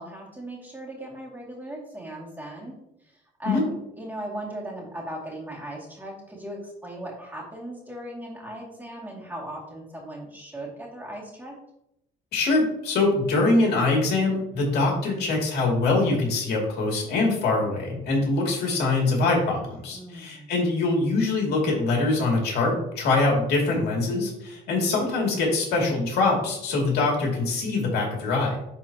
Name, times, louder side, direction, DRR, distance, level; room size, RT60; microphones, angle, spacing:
voice 1, 0.0-11.6 19.9-20.5, right 1 dB, 10° right, -3 dB, 2.4 m, -38 dB
voice 2, 12.3-28.6, left 3 dB, 70° left, -1 dB, 2.6 m, -23 dB
10.5 x 4.2 x 2.9 m, 0.80 s
cardioid pair, 110°, 17 cm